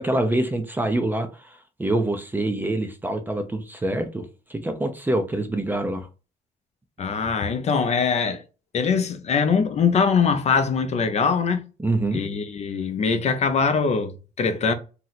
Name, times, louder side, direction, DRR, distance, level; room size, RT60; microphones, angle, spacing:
voice 1, 0.0-6.1 11.8-12.2, right 1 dB, 10° right, 0.4 m, -25 dB
voice 2, 7.0-8.4 8.7-11.6 12.1-14.7, left 5 dB, 40° left, 0.5 m, -22 dB
2.8 x 2.0 x 3.9 m
cardioid pair, 110°, 17 cm